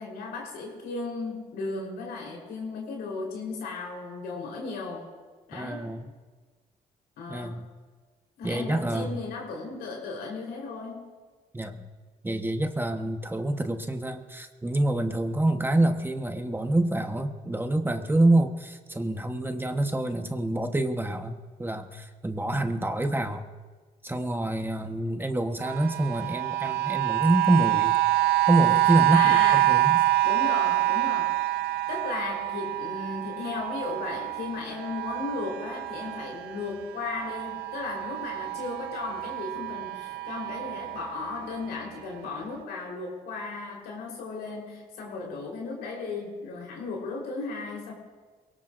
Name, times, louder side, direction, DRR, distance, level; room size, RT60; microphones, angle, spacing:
voice 1, 0.0-5.1 5.5-5.8 7.2-7.6 8.4-11.0 29.1-29.8 30.2-31.4 31.9-47.9, left 4 dB, 90° left, -2 dB, 4.1 m, -35 dB
voice 2, 5.5-6.0 7.3-7.7 8.4-9.2 11.5-11.8 12.2-23.4 24.0-27.9 28.5-29.4 29.7-30.0, right 1 dB, 15° right, 6 dB, 1.2 m, -26 dB
sound 1, 25.6-36.6 37.0-41.6 42.3-42.4, right 18 dB, 85° right, 0.6 m, -26 dB
22.5 x 18.0 x 2.6 m, 1.4 s
cardioid pair, 75°, 16 cm